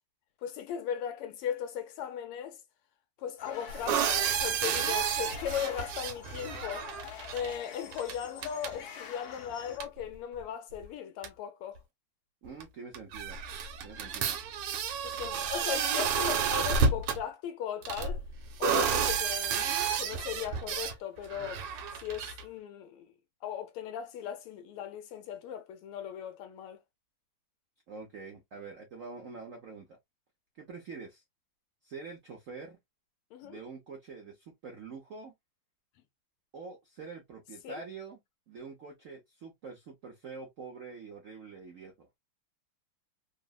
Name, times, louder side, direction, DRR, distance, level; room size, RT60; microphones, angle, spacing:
voice 1, 0.4-2.6 3.2-6.9 7.3-11.8 15.0-18.2 18.6-21.6 22.0-23.1 23.4-26.8 33.3-33.6 37.6-37.8, left 9 dB, 85° left, 1.5 m, -37 dB
sound 1, 3.4-9.8, left 7 dB, 65° left, 1.0 m, -46 dB
sound 2, 3.7-7.5 7.9-8.2 8.4-8.8 9.8-9.9 10.8-10.9 11.2-11.3 12.6-12.7 12.9-17.2 17.8-20.9 21.3-22.4, right 6 dB, 90° right, 1.6 m, -31 dB
voice 2, 12.4-13.4 13.8-14.4 27.9-30.0 30.5-31.2 31.8-32.8 33.4-35.3 36.5-38.2 38.5-42.1, right 4 dB, 75° right, 0.7 m, -45 dB
3.8 x 2.0 x 2.3 m
omnidirectional pair, 2.4 m